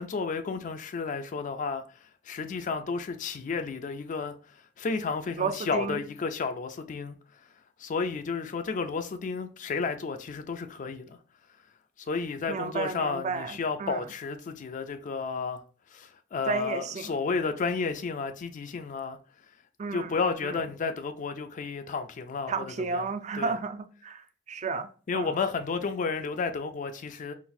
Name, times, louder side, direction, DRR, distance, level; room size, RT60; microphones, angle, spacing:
voice 1, 0.0-1.8 2.3-4.4 4.8-7.2 7.8-11.2 12.0-15.6 15.9-19.2 19.9-23.1 23.3-23.6 25.1-27.3, left 4 dB, 40° left, 0.4 m, -32 dB
voice 2, 5.4-6.0 12.5-14.0 16.5-17.1 19.8-20.6 22.5-24.9 25.1-25.3, right 4 dB, 35° right, 0.3 m, -33 dB
3.9 x 2.4 x 2.6 m
head